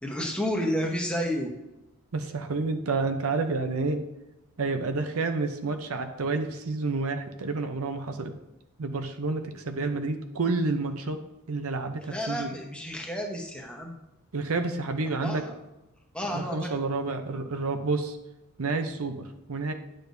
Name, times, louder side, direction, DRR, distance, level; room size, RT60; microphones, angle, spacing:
voice 1, 0.0-1.5 12.1-13.9 15.1-15.6 16.1-16.7, equal, 5° left, 0 dB, 1.0 m, -31 dB
voice 2, 2.1-4.0 4.6-8.3 8.8-11.2 11.5-12.5 14.3-15.4 16.3-18.2 18.6-19.7, right 3 dB, 70° right, 7 dB, 0.7 m, -29 dB
9.9 x 6.4 x 2.7 m, 0.93 s
head